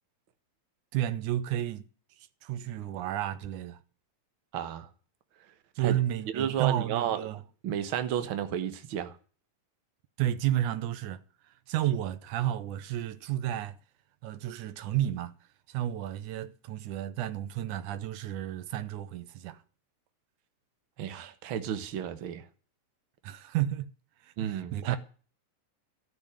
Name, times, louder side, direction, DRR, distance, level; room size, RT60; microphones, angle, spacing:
voice 1, 0.9-1.9 2.4-3.8 5.8-7.4 10.2-11.2 11.7-13.8 14.2-15.3 15.7-19.6 23.2-23.9 24.2-25.0, right 12 dB, 85° right, 2.4 m, -31 dB
voice 2, 4.5-4.9 5.8-6.0 6.3-7.2 7.6-9.2 21.0-22.4 24.4-25.0, right 9 dB, 55° right, 1.7 m, -32 dB
14.5 x 6.2 x 8.7 m
omnidirectional pair, 3.4 m